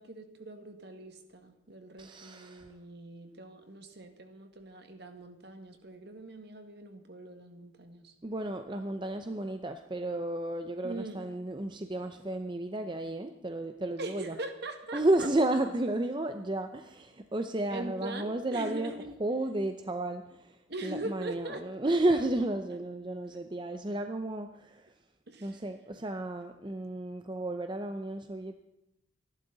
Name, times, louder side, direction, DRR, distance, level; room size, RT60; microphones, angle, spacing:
voice 1, 0.0-8.1 10.8-11.2 14.0-15.3 17.7-19.1 20.7-21.6 25.3-25.6, right 2 dB, 55° right, 6 dB, 1.8 m, -42 dB
voice 2, 2.0-2.7 8.2-14.4 14.9-18.9 19.2-24.9 25.4-28.5, right 1 dB, 25° right, 7 dB, 0.6 m, -32 dB
25.5 x 11.5 x 4.0 m, 0.87 s
head